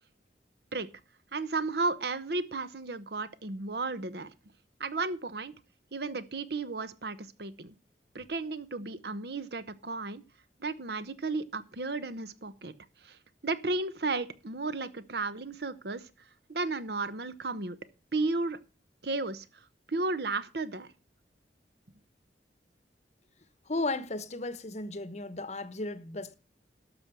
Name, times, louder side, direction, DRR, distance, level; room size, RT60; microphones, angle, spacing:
voice 1, 1.3-4.3 4.8-5.5 5.9-7.7 8.1-10.2 10.6-12.7 13.0-16.1 16.5-17.8 18.1-18.6 19.0-20.9, right 3 dB, 60° right, 1.0 m, -34 dB
voice 2, 23.7-26.3, left 2 dB, 40° left, 0.9 m, -35 dB
12.0 x 6.3 x 6.8 m
head